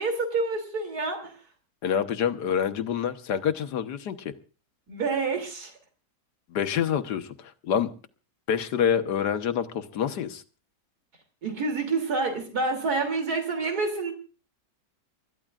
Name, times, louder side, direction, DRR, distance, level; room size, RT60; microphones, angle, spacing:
voice 1, 0.0-1.3 4.9-5.7 11.4-14.1, right 3 dB, 70° right, 5 dB, 3.4 m, -28 dB
voice 2, 1.8-4.3 6.5-7.9 8.5-10.4, left 8 dB, 90° left, 10 dB, 1.6 m, -27 dB
30.0 x 13.5 x 2.4 m, 0.35 s
omnidirectional pair, 1.7 m